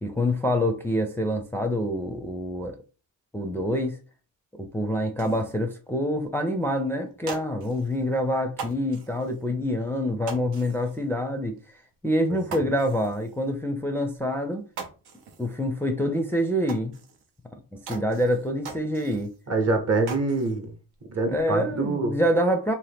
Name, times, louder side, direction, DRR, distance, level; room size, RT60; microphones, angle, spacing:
voice 1, 0.0-2.8 3.3-4.0 4.6-11.6 12.0-14.6 15.4-16.9 17.7-19.3 21.2-22.7, equal, 5° left, 0.4 m, -26 dB
sound 1, 5.1-5.6 6.2-6.3 6.6-6.7 7.1-8.0 8.5-9.4 10.3-11.1 11.4-11.6 11.9-12.0 12.4-13.4 14.2-14.3 14.5-15.6 15.9-16.0 16.7-17.4 17.9-19.4 19.7-20.6 20.9-21.5, right 5 dB, 80° right, 0.7 m, -41 dB
voice 2, 19.5-20.7 21.1-22.2, right 3 dB, 40° right, 0.9 m, -25 dB
2.9 x 2.2 x 3.4 m
cardioid pair, 65°, 38 cm